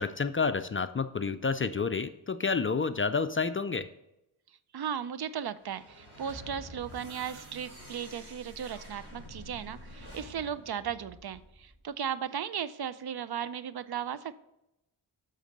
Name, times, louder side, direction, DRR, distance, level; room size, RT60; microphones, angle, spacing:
voice 1, 0.0-3.9, left 4 dB, 25° left, 11 dB, 0.4 m, -29 dB
voice 2, 4.7-14.3, right 8 dB, 50° right, 15 dB, 0.5 m, -36 dB
sound 1, 5.6-11.8, equal, 30° right, 3.3 m, -48 dB
8.1 x 4.0 x 6.6 m, 0.89 s
cardioid pair, 45°, 49 cm